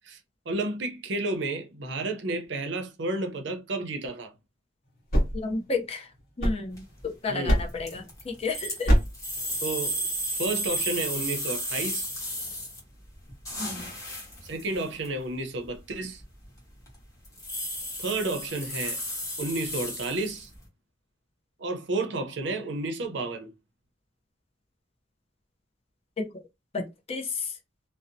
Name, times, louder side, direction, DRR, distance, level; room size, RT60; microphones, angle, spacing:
voice 1, 0.5-4.3 7.3-7.6 9.6-10.0 10.4-12.1 14.4-16.2 18.0-19.0 19.4-20.5 21.6-23.5, right 2 dB, 65° right, 0.6 m, -31 dB
sound 1, 4.8-7.0 7.5-8.0 8.8-9.3, equal, 55° left, 1.1 m, -25 dB
voice 2, 5.3-6.1 6.4-8.9 13.6-13.9 26.2-26.4 26.7-27.6, left 4 dB, 35° left, 0.5 m, -32 dB
sound 2, 6.7-7.0 7.7-12.8 13.1-15.1 15.7-15.8 16.2-16.6 16.9-17.0 17.2-20.6, equal, 15° left, 1.0 m, -33 dB
2.7 x 2.0 x 2.5 m
head